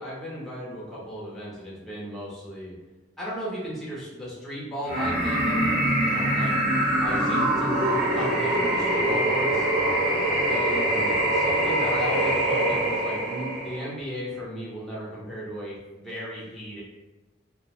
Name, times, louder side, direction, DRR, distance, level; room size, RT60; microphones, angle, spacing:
voice 1, 0.0-2.7 3.2-6.6 7.0-9.7 10.5-16.8, equal, ahead, -7 dB, 0.5 m, -35 dB
sound 1, 4.8-13.9, right 1 dB, 20° right, 1.1 m, -24 dB
2.2 x 2.1 x 2.9 m, 1.1 s
head